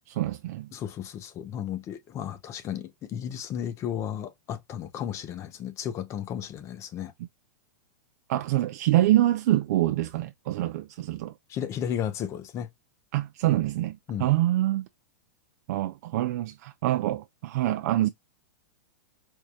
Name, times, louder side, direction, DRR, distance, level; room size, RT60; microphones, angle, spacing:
voice 1, 0.1-0.7 8.3-11.3 13.1-14.9 15.7-18.1, right 14 dB, 60° right, 0.4 m, -25 dB
voice 2, 0.7-7.1 11.5-12.7 14.1-14.3, left 9 dB, 30° left, 0.6 m, -34 dB
4.5 x 2.3 x 2.6 m
hypercardioid pair, 125°, 10 cm